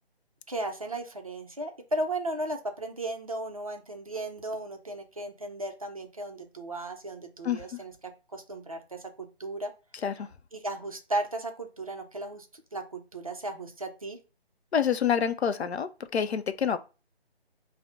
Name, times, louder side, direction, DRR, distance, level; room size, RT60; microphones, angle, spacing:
voice 1, 0.5-9.7 10.5-14.2, right 1 dB, 35° right, 0.4 m, -35 dB
voice 2, 14.7-16.8, left 8 dB, 80° left, 0.5 m, -27 dB
4.6 x 2.0 x 2.6 m
figure-of-eight pair, 160°, 32 cm